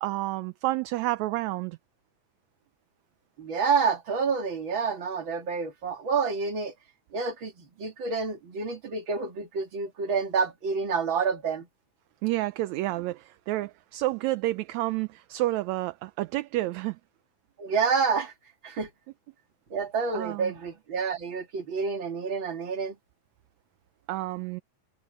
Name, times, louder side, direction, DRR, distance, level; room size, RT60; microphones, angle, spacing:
voice 1, 0.0-1.8 12.2-17.0 20.1-20.5 24.1-24.6, right 17 dB, 75° right, 1.9 m, -30 dB
voice 2, 3.4-6.7 7.1-11.7 17.6-18.3 18.6-18.9 19.7-23.0, right 5 dB, 40° right, 3.2 m, -28 dB
omnidirectional pair, 3.5 m